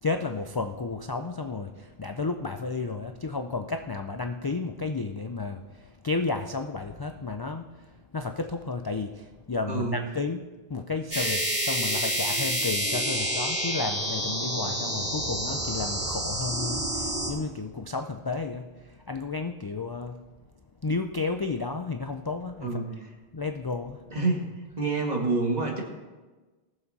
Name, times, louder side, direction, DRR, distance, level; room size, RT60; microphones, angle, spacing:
voice 1, 0.0-7.9 8.1-10.4 10.7-20.2 20.8-22.8 23.3-24.0, left 3 dB, 35° left, 6 dB, 0.3 m, -32 dB
voice 2, 9.7-10.0 22.6-23.1 24.1-24.5 24.8-25.8, right 3 dB, 40° right, 0 dB, 1.9 m, -27 dB
sound 1, 11.1-17.3, right 1 dB, 10° right, 2.8 m, -28 dB
18.5 x 7.1 x 4.1 m, 1.2 s
omnidirectional pair, 1.1 m